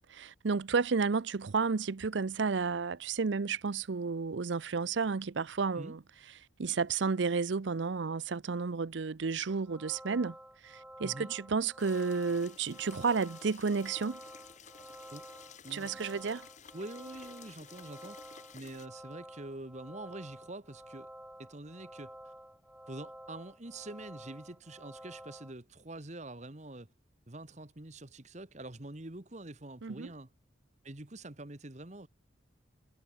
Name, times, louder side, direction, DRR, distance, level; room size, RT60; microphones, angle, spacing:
voice 1, 0.1-6.0 6.6-10.4 10.6-14.2 15.7-16.5 29.8-30.1, right 5 dB, 70° right, 0.6 m, -32 dB
sound 1, 9.5-25.5, right 1 dB, 5° right, 4.9 m, -51 dB
voice 2, 11.0-11.3 15.1-15.2 15.6-16.3 16.7-21.1 21.4-22.3 22.9-26.9 27.3-30.3 30.8-32.1, right 2 dB, 40° right, 1.5 m, -46 dB
sound 2, 11.8-18.9, left 7 dB, 40° left, 1.9 m, -54 dB
head